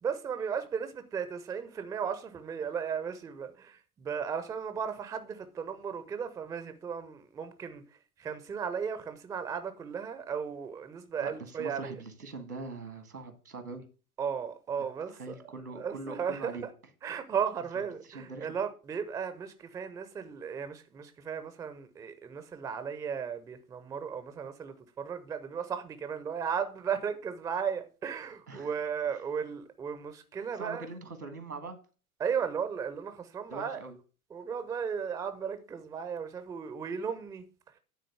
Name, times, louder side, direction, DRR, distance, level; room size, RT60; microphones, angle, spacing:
voice 1, 0.0-12.0 14.2-16.7 17.0-30.9 32.2-33.8 34.3-37.8, right 7 dB, 5° right, 0.5 m, -35 dB
voice 2, 11.6-13.8 15.2-16.6 18.1-18.5 28.5-28.7 30.6-31.8 33.5-33.9, right 3 dB, 85° right, 1.7 m, -42 dB
9.6 x 3.9 x 6.5 m
figure-of-eight pair, 90°, 44 cm